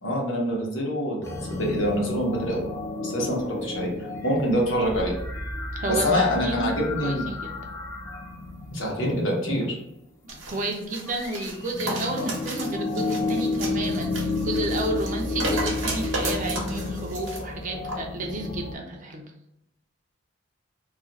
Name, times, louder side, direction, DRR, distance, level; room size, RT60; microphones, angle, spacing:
voice 1, 0.0-2.6 3.0-3.9 4.2-5.1 5.9-7.2 8.7-9.8 12.2-12.3, equal, 80° left, -2 dB, 1.0 m, -25 dB
sound 1, 1.2-9.9 10.9-18.8, left 2 dB, 15° left, 0.3 m, -31 dB
voice 2, 5.8-7.5 10.2-19.3, right 1 dB, 40° right, 2 dB, 0.5 m, -31 dB
sound 2, 10.3-17.4 17.9-18.0, right 2 dB, 80° right, 0.8 m, -34 dB
2.4 x 2.4 x 4.0 m, 0.83 s
head